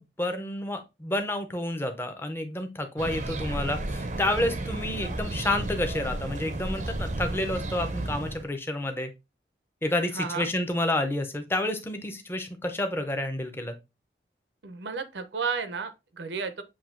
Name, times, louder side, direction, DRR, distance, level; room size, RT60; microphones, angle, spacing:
voice 1, 0.0-9.1 9.8-13.7, left 1 dB, 15° left, 0.5 m, -29 dB
sound 1, 3.0-8.4, right 2 dB, 45° right, 0.5 m, -33 dB
voice 2, 10.1-10.5 14.6-16.6, right 5 dB, 85° right, 0.6 m, -32 dB
7.1 x 2.7 x 2.5 m
head